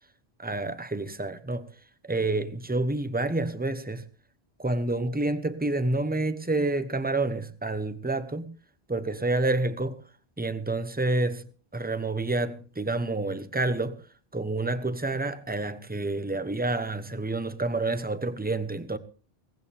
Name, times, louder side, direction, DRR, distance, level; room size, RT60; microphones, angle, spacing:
voice 1, 0.4-1.7 2.0-4.0 4.6-8.5 8.9-10.0 10.4-14.0 14.3-19.0, right 2 dB, 10° right, 1.0 m, -28 dB
18.5 x 15.5 x 3.5 m
omnidirectional pair, 1.0 m